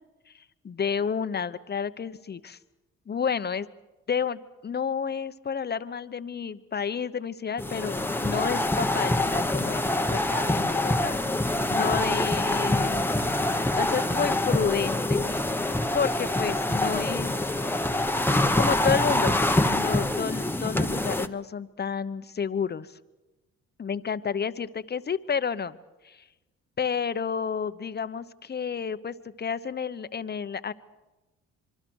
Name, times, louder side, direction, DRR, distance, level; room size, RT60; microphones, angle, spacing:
voice 1, 0.6-2.6 3.1-3.7 4.1-13.1 13.7-15.2 15.9-17.9 18.6-19.4 19.7-22.9 23.8-25.8 26.0-26.2 26.8-30.7, left 6 dB, 35° left, 13 dB, 1.0 m, -30 dB
sound 1, 7.6-21.3, left 1 dB, 5° left, 1.1 m, -25 dB
25.5 x 24.0 x 6.4 m, 1.1 s
cardioid pair, 90°, 30 cm